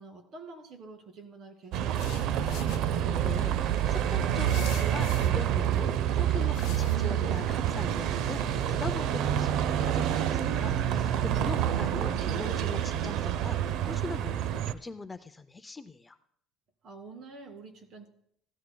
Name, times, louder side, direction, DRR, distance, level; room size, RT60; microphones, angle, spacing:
voice 1, 0.0-2.6 16.8-18.1, right 3 dB, 50° right, 5 dB, 2.3 m, -48 dB
Bus, 1.7-14.7, right 10 dB, 65° right, 0.6 m, -28 dB
sound 1, 2.0-2.8 4.5-5.3 6.5-7.0, left 15 dB, 80° left, 0.6 m, -45 dB
voice 2, 3.0-16.2, left 3 dB, 15° left, 10 dB, 0.5 m, -41 dB
15.5 x 13.0 x 2.3 m, 0.67 s
cardioid pair, 125°, 0 cm